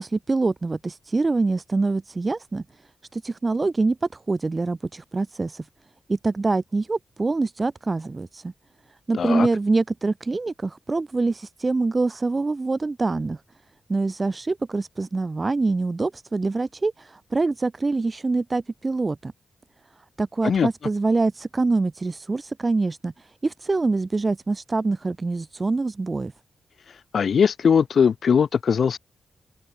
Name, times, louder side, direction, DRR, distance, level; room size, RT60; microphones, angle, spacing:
voice 1, 0.0-2.6 3.1-5.7 6.1-8.5 9.1-13.4 13.9-19.3 20.2-26.3, right 3 dB, 30° right, 7.4 m, -25 dB
voice 2, 9.1-9.5 20.4-20.7 26.9-29.0, left 6 dB, 60° left, 7.5 m, -20 dB
open air
wide cardioid pair, 105°, 0 cm